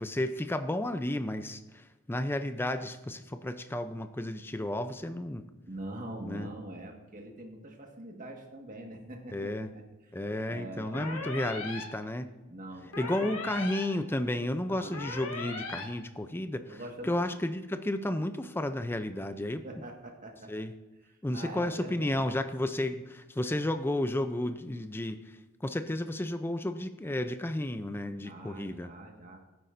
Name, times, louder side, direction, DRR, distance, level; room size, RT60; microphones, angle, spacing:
voice 1, 0.0-5.5 6.3-6.5 9.3-9.7 10.1-12.3 13.0-19.6 20.5-20.7 21.2-25.4 25.6-28.9, left 1 dB, 10° left, 9 dB, 0.4 m, -32 dB
voice 2, 5.7-10.2 10.5-11.6 12.5-13.3 14.7-15.1 16.7-17.3 19.6-20.7 21.1-22.3 28.2-29.4, right 1 dB, 40° right, 2 dB, 1.6 m, -44 dB
sound 1, 10.9-11.8 12.9-13.8 14.9-15.8, left 3 dB, 80° left, 1.8 m, -38 dB
16.5 x 9.1 x 2.6 m, 1.1 s
head